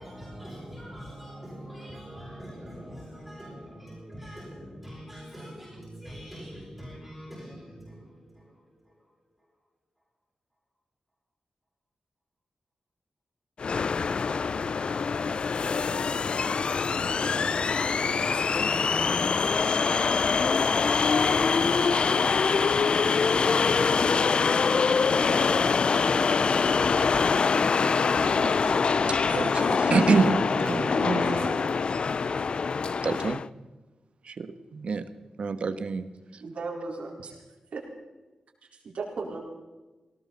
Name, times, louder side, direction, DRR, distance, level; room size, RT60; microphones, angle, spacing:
voice 1, 0.0-9.5, equal, 5° right, 6.9 m, -43 dB
sound 1, 13.6-33.5, left 5 dB, 50° left, 0.5 m, -24 dB
voice 2, 27.6-27.9 28.3-28.8 29.0-31.7 33.0-33.4 34.2-35.0 35.4-36.1 36.3-36.4, right 4 dB, 65° right, 1.2 m, -28 dB
voice 3, 36.4-37.4 37.7-37.8 38.8-39.4, right 3 dB, 80° right, 4.3 m, -35 dB
19.5 x 18.0 x 4.1 m
wide cardioid pair, 115°, 2 cm